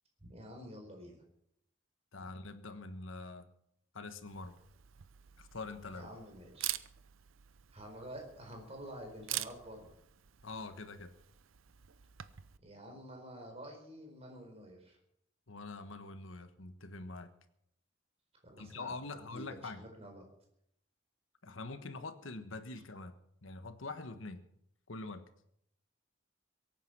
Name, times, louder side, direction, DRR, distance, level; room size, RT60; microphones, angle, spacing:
voice 1, 0.2-1.2 5.9-6.7 7.7-9.9 12.6-15.0 18.4-20.2, equal, 30° right, 2 dB, 4.5 m, -49 dB
voice 2, 2.1-3.5 3.9-4.6 5.4-6.1 10.4-11.1 15.5-17.3 18.6-19.8 21.4-24.4 24.9-25.2, left 3 dB, 80° left, 10 dB, 1.3 m, -44 dB
Camera, 4.3-12.6, right 14 dB, 85° right, 0.7 m, -46 dB
22.5 x 9.3 x 6.0 m, 0.74 s
head